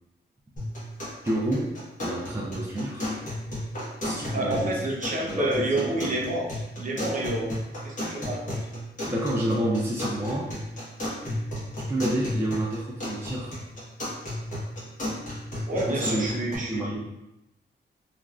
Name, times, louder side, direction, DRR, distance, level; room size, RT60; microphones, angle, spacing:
sound 1, 0.6-16.6, left 1 dB, 45° left, 1.1 m, -34 dB
voice 1, 1.2-3.1 4.0-4.8 5.2-6.2 9.1-10.5 11.9-13.6 15.7-16.3 16.7-17.0, right 1 dB, 15° right, -3 dB, 0.3 m, -29 dB
voice 2, 4.3-6.5 6.8-7.5 7.8-8.5 15.7-16.8, right 1 dB, 45° right, -3 dB, 0.7 m, -28 dB
3.0 x 2.4 x 2.3 m, 0.90 s
wide cardioid pair, 120°, 19 cm